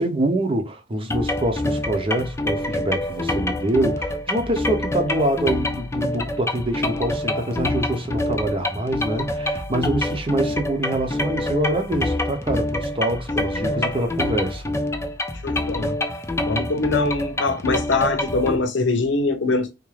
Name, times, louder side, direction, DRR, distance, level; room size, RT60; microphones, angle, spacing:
voice 1, 0.0-14.7, right 1 dB, 30° right, 0.8 m, -25 dB
sound 1, 1.1-18.6, left 1 dB, 15° left, 0.4 m, -26 dB
voice 2, 13.6-13.9 15.4-16.0 16.4-19.7, left 3 dB, 90° left, 0.8 m, -23 dB
3.6 x 2.6 x 3.1 m
head